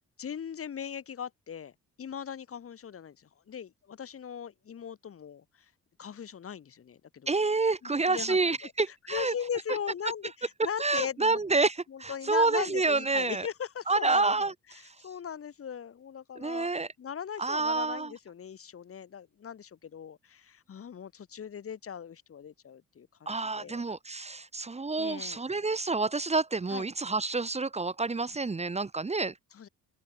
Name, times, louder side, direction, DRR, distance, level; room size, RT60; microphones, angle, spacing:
voice 1, 0.2-1.7 2.0-5.7 6.0-7.3 7.8-8.7 9.1-16.7 17.0-23.1 23.5-23.8 25.0-25.4 26.7-26.9 29.5-29.7, left 8 dB, 50° left, 2.1 m, -39 dB
voice 2, 7.3-9.3 10.8-13.5 13.9-14.5 14.8-14.9 16.4-16.9 17.4-18.1 23.3-29.3, right 3 dB, 20° right, 1.4 m, -28 dB
cardioid pair, 90°, 30 cm